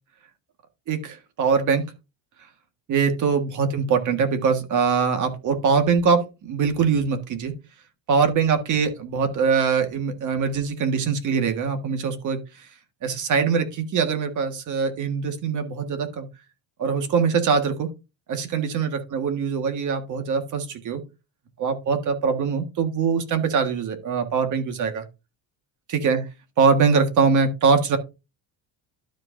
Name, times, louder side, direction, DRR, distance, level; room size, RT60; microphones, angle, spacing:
voice 1, 0.9-1.8 2.9-7.5 8.1-12.7 13.0-16.3 16.8-17.9 18.3-21.0 21.6-25.1 25.9-26.2 26.6-28.0, right 5 dB, 45° right, 7 dB, 1.7 m, -22 dB
12.0 x 5.1 x 2.6 m, 0.27 s
cardioid pair, 135°, 43 cm